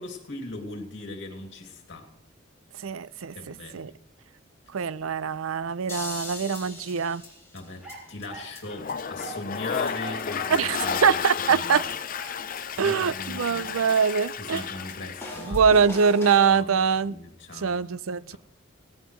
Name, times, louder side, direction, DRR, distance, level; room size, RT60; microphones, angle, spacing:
voice 1, 0.0-2.1 3.3-3.9 7.5-11.2 11.5-11.8 12.8-13.7 14.4-15.6 16.5-16.8 17.0-17.7 18.3-18.4, left 2 dB, 60° left, 2.6 m, -39 dB
voice 2, 2.8-3.9 4.7-7.2 10.5-11.9 12.8-14.6 15.4-17.2 17.5-18.4, right 6 dB, 75° right, 0.5 m, -23 dB
sound 1, 5.9-7.9 8.2-8.3 8.5-8.6 8.9-9.0 9.2-9.3 9.5-9.6 9.9-10.0 10.2-10.9 11.2-11.3 11.6-11.7 11.9-12.0 12.2-12.3 12.6-12.7 12.9-13.0 13.2-13.3 13.5-13.6 13.9-14.0 14.2-14.3 14.6-14.7 14.9-15.0 15.2-16.5, left 2 dB, 15° left, 3.8 m, -39 dB
sound 2, 7.8-8.6 9.2-9.5 10.0-10.6 10.8-11.1 11.7-12.5 13.6-13.8, right 3 dB, 5° right, 8.0 m, -42 dB
Toilet flush, 8.7-15.4, left 7 dB, 40° left, 0.6 m, -32 dB
18.0 x 17.0 x 3.2 m
head